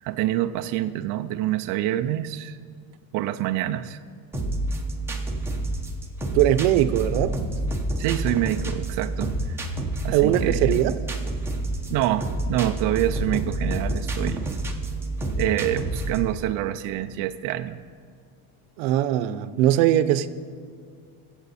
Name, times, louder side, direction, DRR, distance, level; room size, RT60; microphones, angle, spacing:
voice 1, 0.0-2.6 3.1-4.0 8.0-9.7 10.0-10.7 11.9-14.5 15.4-17.8, right 13 dB, 45° right, 7 dB, 0.4 m, -26 dB
sound 1, 4.3-16.3, right 1 dB, 5° right, 0.9 m, -28 dB
voice 2, 6.3-7.3 10.1-10.9 18.8-20.3, right 12 dB, 75° right, 12 dB, 0.8 m, -20 dB
23.5 x 7.9 x 4.2 m, 2.2 s
cardioid pair, 165°, 48 cm